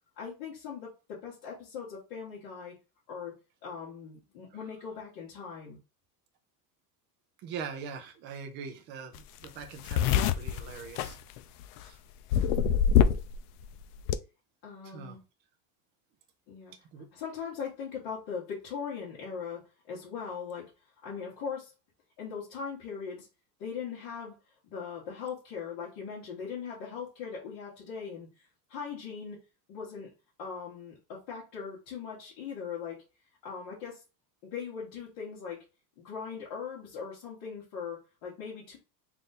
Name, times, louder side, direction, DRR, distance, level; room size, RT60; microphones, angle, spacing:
voice 1, 0.2-2.8 3.1-3.3 3.6-5.8 14.6-15.2 16.5-16.7 17.1-20.7 21.0-21.7 22.2-23.3 23.6-24.4 24.6-28.3 28.7-29.4 29.7-30.1 30.4-33.0 33.4-34.0 34.4-35.6 36.0-38.8, left 6 dB, 45° left, -7 dB, 1.5 m, -40 dB
voice 2, 7.4-9.1 9.4-11.2 11.8-12.0 14.9-15.2 16.9-17.1, right 6 dB, 25° right, 5 dB, 0.4 m, -42 dB
sound 1, 9.2-9.3 9.4-11.8 12.3-13.4 13.6-14.2, left 8 dB, 70° left, 0.5 m, -24 dB
3.4 x 2.6 x 4.0 m, 0.30 s
supercardioid pair, 160°, 48 cm